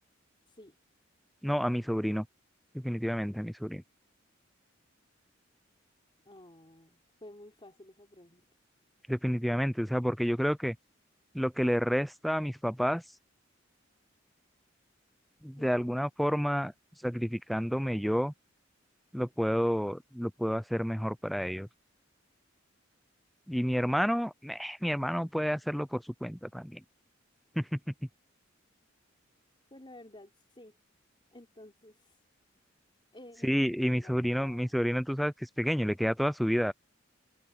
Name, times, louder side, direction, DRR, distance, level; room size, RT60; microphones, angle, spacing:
voice 1, 1.4-2.2 2.7-3.8 9.1-10.8 11.3-13.0 15.4-16.7 17.0-18.3 19.1-21.7 23.5-26.8 27.6-27.8 33.4-36.7, equal, ahead, 0.3 m, -30 dB
voice 2, 6.2-8.4 15.6-15.9 29.7-30.8 31.3-32.2 33.1-34.8, left 1 dB, 25° left, 5.0 m, -53 dB
head